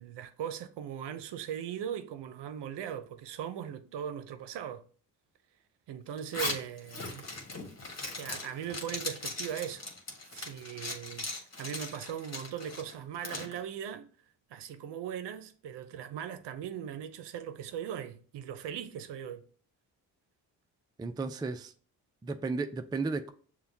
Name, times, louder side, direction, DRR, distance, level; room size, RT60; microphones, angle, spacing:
voice 1, 0.0-4.8 5.9-7.3 8.2-9.9 10.3-14.1 14.5-19.4, right 9 dB, 70° right, 0.6 m, -39 dB
Zipper (clothing), 6.2-13.5, left 2 dB, 35° left, 1.5 m, -39 dB
voice 2, 21.0-21.7 22.2-23.3, right 3 dB, 10° right, 0.3 m, -34 dB
6.8 x 2.3 x 2.7 m
supercardioid pair, 55°, 44 cm